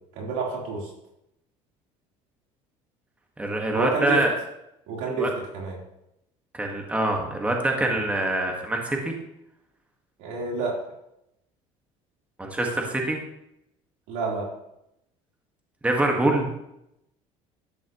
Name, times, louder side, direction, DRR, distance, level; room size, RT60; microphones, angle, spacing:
voice 1, 0.1-0.9 3.7-4.2 4.9-5.3 5.5-5.8 10.2-10.8 14.1-14.5, right 3 dB, 90° right, -3 dB, 3.9 m, -28 dB
voice 2, 3.4-4.3 5.2-5.3 6.5-9.1 12.4-13.2 15.8-16.5, right 2 dB, 10° right, 1 dB, 1.7 m, -25 dB
12.5 x 9.9 x 3.1 m, 0.82 s
cardioid pair, 130°, 14 cm